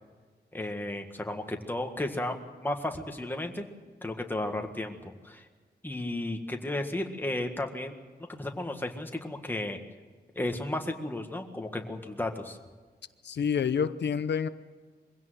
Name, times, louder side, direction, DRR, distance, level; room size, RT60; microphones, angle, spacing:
voice 1, 0.5-3.6 4.0-5.4 5.8-8.0 8.3-9.8 10.3-12.6, left 1 dB, 10° left, 4 dB, 1.7 m, -34 dB
voice 2, 13.2-14.5, left 7 dB, 85° left, 12 dB, 0.7 m, -28 dB
23.0 x 16.5 x 8.0 m, 1.5 s
wide cardioid pair, 160°, 18 cm